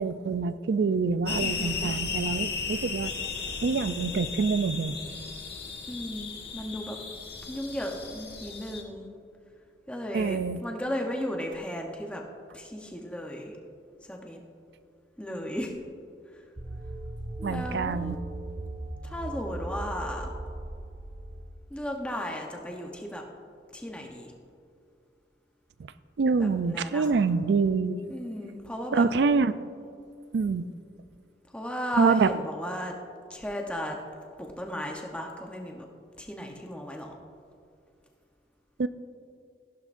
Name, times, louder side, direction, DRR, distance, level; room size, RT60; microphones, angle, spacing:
voice 1, 0.0-3.1 3.6-5.0 10.1-10.6 17.4-18.2 26.2-28.0 28.9-29.6 30.3-30.7 32.0-32.3 38.8-38.9, right 4 dB, 70° right, 14 dB, 0.4 m, -25 dB
sound 1, 1.3-8.8, left 5 dB, 65° left, 1.3 m, -35 dB
voice 2, 1.4-1.9 5.9-7.0 7.5-9.1 9.9-12.2 12.5-13.6 14.0-14.4 15.2-15.7 17.4-18.2 19.0-20.3 21.7-23.2 23.7-24.3 26.4-27.2 28.1-29.0 31.5-32.9 33.3-34.0 34.4-35.9 36.2-37.2, equal, 5° left, 1 dB, 0.8 m, -35 dB
sound 2, 16.6-21.5, right 1 dB, 25° right, 0.6 m, -38 dB
14.5 x 11.5 x 2.5 m, 2.4 s
head